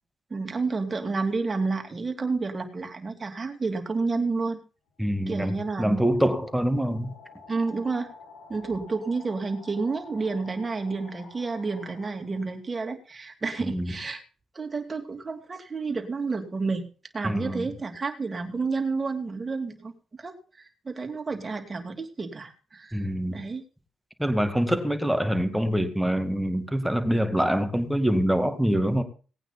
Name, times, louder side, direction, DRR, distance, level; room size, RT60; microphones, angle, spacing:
voice 1, 0.3-4.6 5.3-6.0 7.5-8.1 8.5-14.2 14.5-16.8 17.1-19.9 20.2-23.6, right 4 dB, 25° right, 4 dB, 2.6 m, -30 dB
sound 1, 4.9-12.7, left 3 dB, 75° left, 6.7 m, -50 dB
voice 2, 5.0-7.1 13.6-14.0 17.2-17.7 22.9-23.4 24.2-29.0, equal, ahead, 7 dB, 2.1 m, -25 dB
18.5 x 9.0 x 4.1 m, 0.37 s
cardioid pair, 90°, 0 cm